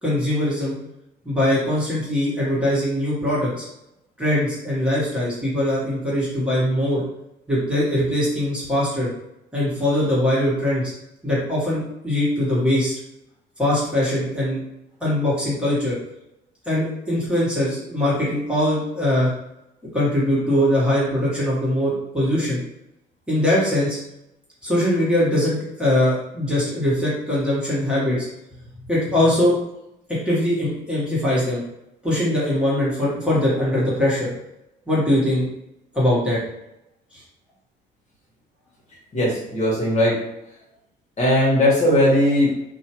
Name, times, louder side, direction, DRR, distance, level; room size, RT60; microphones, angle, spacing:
voice 1, 0.0-0.7 1.2-3.5 4.2-7.0 7.5-9.1 9.5-10.9 11.2-12.9 13.6-14.6 15.0-15.9 16.6-19.3 19.9-22.6 23.3-24.0 24.6-28.3 28.9-29.5 30.2-31.6 32.0-34.3 34.9-35.5 35.9-36.4, left 1 dB, 5° right, -8 dB, 1.2 m, -21 dB
voice 2, 39.1-40.2 41.2-42.5, left 1 dB, 40° left, -6 dB, 1.1 m, -18 dB
2.7 x 2.2 x 2.9 m, 0.84 s
cardioid pair, 105°, 18 cm